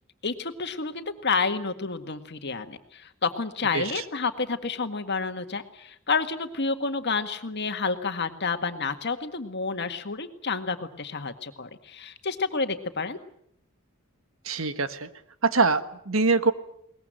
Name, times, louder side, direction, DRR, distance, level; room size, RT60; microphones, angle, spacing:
voice 1, 0.2-13.2, left 4 dB, 55° left, 8 dB, 1.9 m, -29 dB
voice 2, 14.4-15.1 15.4-16.5, right 4 dB, 70° right, 11 dB, 1.5 m, -23 dB
22.0 x 20.0 x 9.1 m, 0.70 s
head